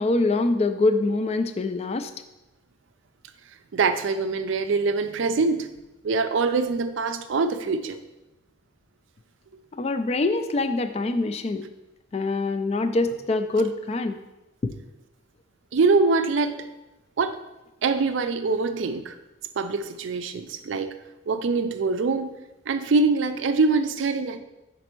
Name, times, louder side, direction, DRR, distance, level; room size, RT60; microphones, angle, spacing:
voice 1, 0.0-2.1 9.7-11.6 12.1-14.2, left 2 dB, 30° left, 10 dB, 0.3 m, -24 dB
voice 2, 3.7-5.7 6.0-8.0 15.7-16.7 17.2-17.4 17.8-19.1 19.6-20.9 21.3-22.4 22.7-24.4, right 4 dB, 70° right, 10 dB, 0.4 m, -24 dB
5.3 x 4.1 x 4.4 m, 1.0 s
head